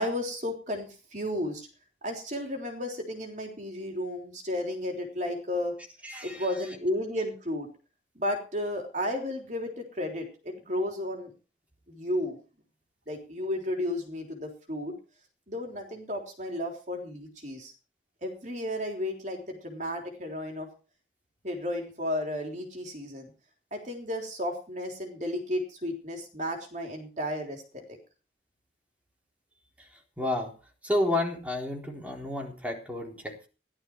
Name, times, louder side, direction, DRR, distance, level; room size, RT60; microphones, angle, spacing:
voice 1, 0.0-1.7 2.0-5.8 6.2-7.7 8.2-11.3 11.9-12.4 13.1-14.9 15.5-17.7 18.2-20.7 21.4-23.3 23.7-27.8, left 1 dB, 40° right, 3 dB, 3.5 m, -33 dB
voice 2, 6.0-6.5 30.2-30.5 30.8-33.5, left 1 dB, 10° right, 1 dB, 3.9 m, -30 dB
16.5 x 11.5 x 4.7 m, 0.35 s
head